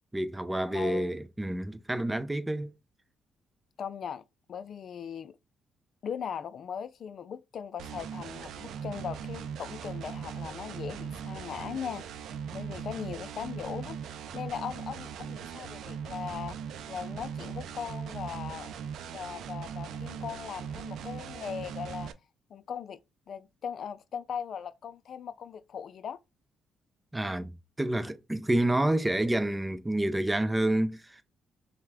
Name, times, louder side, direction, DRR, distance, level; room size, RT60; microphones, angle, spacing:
voice 1, 0.1-2.7 27.1-27.5 27.8-31.2, right 1 dB, 10° right, 0.5 m, -28 dB
voice 2, 0.7-1.1 3.8-4.2 4.5-5.4 6.0-12.1 12.5-14.0 14.3-16.6 16.9-18.7 19.1-22.1 22.5-23.0 23.3-26.2, left 7 dB, 60° left, 0.3 m, -39 dB
sound 1, 7.8-22.1, right 7 dB, 75° right, 0.4 m, -39 dB
5.6 x 2.1 x 3.5 m
cardioid pair, 90°, 0 cm